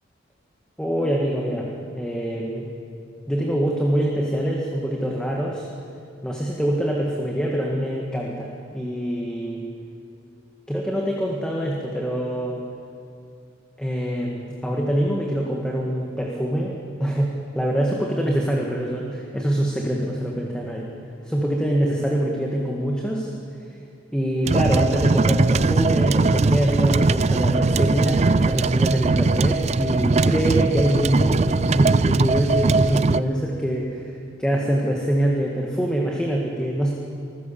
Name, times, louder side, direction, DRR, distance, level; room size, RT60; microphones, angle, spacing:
voice 1, 0.8-1.7 1.9-2.7 3.3-5.7 6.2-9.6 10.7-12.6 13.8-17.3 17.6-20.9 21.2-23.3 24.1-36.9, equal, 5° left, -2 dB, 1.8 m, -24 dB
sound 1, 24.4-33.2, right 3 dB, 35° right, 0.4 m, -20 dB
24.5 x 16.0 x 7.1 m, 2.5 s
head